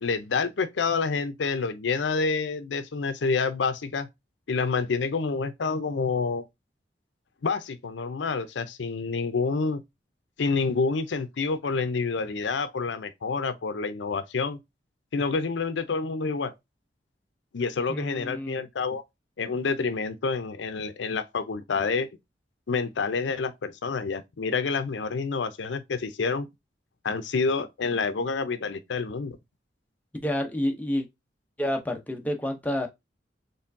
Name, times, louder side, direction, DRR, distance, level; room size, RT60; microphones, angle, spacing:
voice 1, 0.0-4.1 4.5-6.5 7.4-9.8 10.4-14.6 15.1-16.5 17.5-19.0 19.4-22.1 22.7-26.5 27.0-29.4, left 4 dB, 85° left, 0.5 m, -28 dB
voice 2, 17.9-18.6 30.2-31.1 31.6-32.9, left 1 dB, 10° left, 0.7 m, -29 dB
4.4 x 3.2 x 2.6 m
head